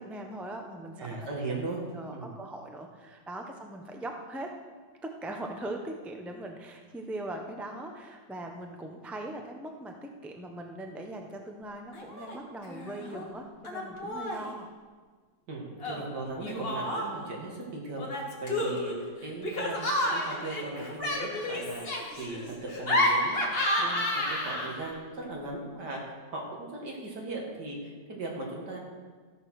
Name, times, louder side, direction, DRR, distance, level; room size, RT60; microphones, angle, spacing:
voice 1, 0.0-1.3 1.9-4.5 5.0-14.7, right 1 dB, ahead, 2 dB, 0.5 m, -40 dB
voice 2, 1.0-1.8 2.1-2.4 15.5-21.9 22.2-23.4 23.8-28.8, right 2 dB, 60° right, -2 dB, 2.7 m, -38 dB
Laughter, 11.9-12.4 12.6-13.2 13.6-14.5 15.8-17.3 18.0-24.9, left 1 dB, 35° left, 1.7 m, -31 dB
13.0 x 7.0 x 6.2 m, 1.5 s
omnidirectional pair, 2.0 m